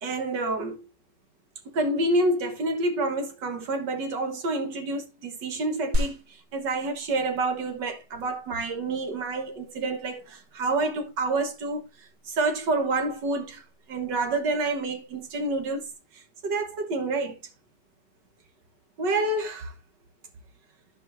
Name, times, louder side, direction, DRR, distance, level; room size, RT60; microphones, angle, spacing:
voice 1, 0.0-0.9 1.7-11.8 12.3-15.8 16.1-17.4 19.0-19.7, right 2 dB, 80° right, 1.9 m, -28 dB
sound 1, 5.9-15.9, left 1 dB, 50° right, 1.8 m, -37 dB
14.5 x 5.1 x 2.5 m
omnidirectional pair, 1.9 m